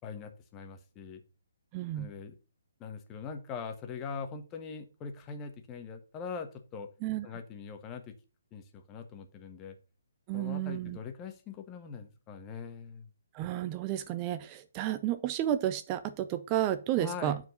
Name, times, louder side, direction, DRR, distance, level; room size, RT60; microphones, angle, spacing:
voice 1, 0.0-1.2 1.9-2.4 2.8-6.9 7.2-8.1 8.5-9.8 10.3-13.1 17.0-17.4, left 5 dB, 20° left, 6 dB, 1.4 m, -42 dB
voice 2, 1.7-2.1 7.0-7.3 10.3-11.0 13.3-17.4, right 12 dB, 30° right, 11 dB, 0.6 m, -32 dB
9.2 x 4.7 x 5.4 m, 0.35 s
figure-of-eight pair, 140°, 0 cm